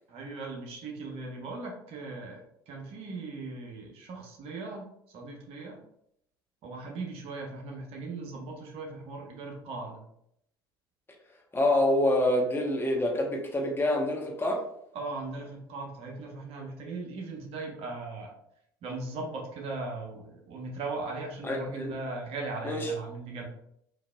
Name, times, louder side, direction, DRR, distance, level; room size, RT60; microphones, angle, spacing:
voice 1, 0.1-4.8 5.1-5.8 6.6-10.0 14.9-18.3 18.8-23.5, right 3 dB, 55° right, 0 dB, 0.9 m, -38 dB
voice 2, 11.5-14.6 21.4-21.9 22.6-22.9, left 1 dB, 20° left, 0 dB, 0.8 m, -26 dB
3.8 x 2.8 x 2.2 m, 0.75 s
figure-of-eight pair, 60°, 12 cm